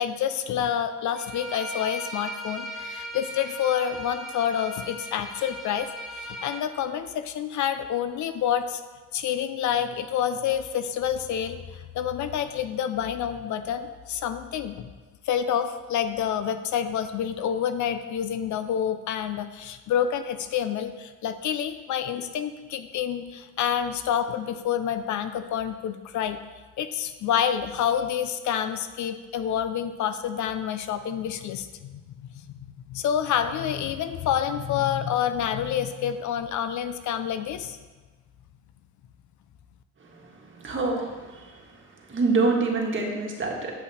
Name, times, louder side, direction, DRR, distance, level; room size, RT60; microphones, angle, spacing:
voice 1, 0.0-5.9 6.1-8.8 9.1-11.6 11.9-14.9 15.3-26.4 26.8-31.9 32.9-37.8, left 9 dB, 70° left, 10 dB, 0.6 m, -28 dB
Bowed string instrument, 1.1-6.6, equal, ahead, 1.4 m, -38 dB
voice 2, 40.0-41.8 42.1-43.7, right 3 dB, 40° right, -1 dB, 1.7 m, -27 dB
8.5 x 5.6 x 4.2 m, 1.3 s
cardioid pair, 90°, 30 cm